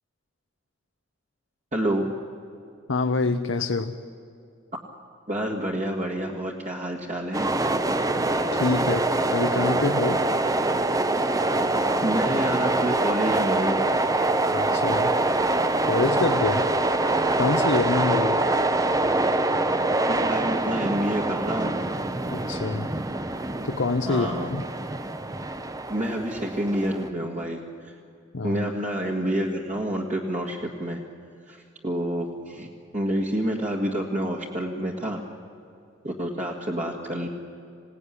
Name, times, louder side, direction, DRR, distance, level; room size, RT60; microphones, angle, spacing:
voice 1, 1.7-2.1 5.3-7.5 12.0-13.8 20.1-21.7 24.1-24.5 25.9-27.9 28.4-31.0 31.5-35.2 36.0-37.3, right 1 dB, 40° right, -1 dB, 1.8 m, -28 dB
voice 2, 2.9-4.0 8.1-10.3 14.5-15.2 15.8-16.7 17.4-18.4 22.3-22.9 23.6-24.6 28.3-28.6, left 3 dB, 75° left, 6 dB, 0.9 m, -26 dB
sound 1, 7.3-27.1, right 2 dB, 20° right, 0.8 m, -24 dB
26.5 x 17.5 x 9.9 m, 2.5 s
head